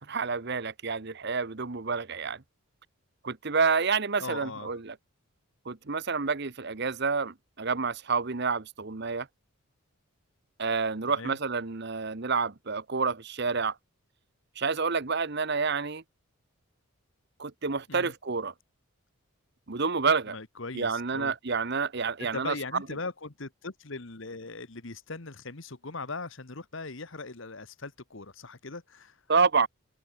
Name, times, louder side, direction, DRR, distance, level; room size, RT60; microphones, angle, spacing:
voice 1, 0.0-2.4 3.2-4.9 5.6-9.3 10.6-13.8 14.6-16.0 17.4-18.5 19.7-20.4 20.7-22.5 29.3-29.7, right 5 dB, 50° right, 1.0 m, -28 dB
voice 2, 4.2-4.7 11.2-11.4 17.9-18.1 20.3-21.3 22.2-29.2, left 3 dB, 60° left, 1.4 m, -39 dB
head